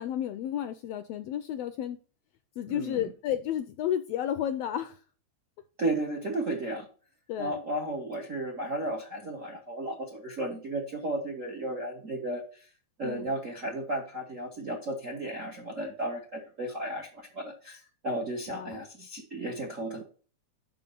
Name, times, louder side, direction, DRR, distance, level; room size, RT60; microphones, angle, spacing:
voice 1, 0.0-2.0 2.6-5.0 7.3-7.5 13.0-13.3 18.5-18.8, left 10 dB, 80° left, 1.5 m, -32 dB
voice 2, 2.7-3.1 5.8-6.9 7.4-12.7 13.0-20.0, right 1 dB, 55° right, 0.8 m, -34 dB
5.6 x 5.4 x 5.3 m
omnidirectional pair, 3.3 m